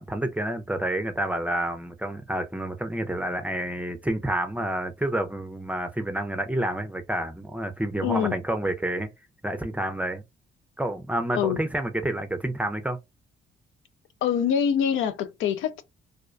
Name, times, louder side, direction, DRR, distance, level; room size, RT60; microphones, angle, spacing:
voice 1, 0.0-9.1 9.4-10.2 10.8-13.0, right 1 dB, 5° right, 0.5 m, -29 dB
voice 2, 8.0-8.4 11.3-11.6 14.2-15.8, left 8 dB, 75° left, 0.4 m, -25 dB
2.3 x 2.1 x 2.4 m
cardioid pair, 90°, 20 cm